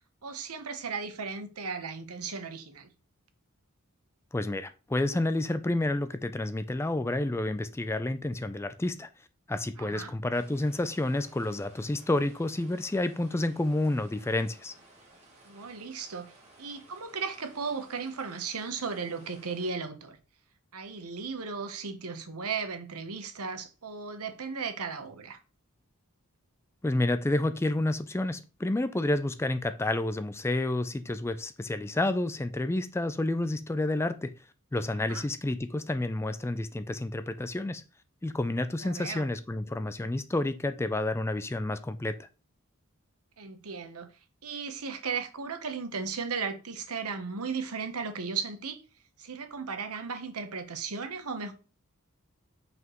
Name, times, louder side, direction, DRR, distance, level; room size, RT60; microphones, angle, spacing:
voice 1, 0.2-2.9 9.8-10.1 15.4-16.3 16.6-20.2 20.7-25.4 34.9-35.2 38.8-39.3 43.4-44.1 44.4-48.8 49.2-51.5, right 5 dB, 85° right, 1.0 m, -36 dB
voice 2, 4.3-9.1 9.5-14.7 26.8-34.3 34.7-37.8 38.2-42.3, left 2 dB, 10° left, 0.3 m, -30 dB
sound 1, 10.3-19.7, right 2 dB, 30° right, 1.7 m, -57 dB
5.9 x 5.2 x 3.0 m
head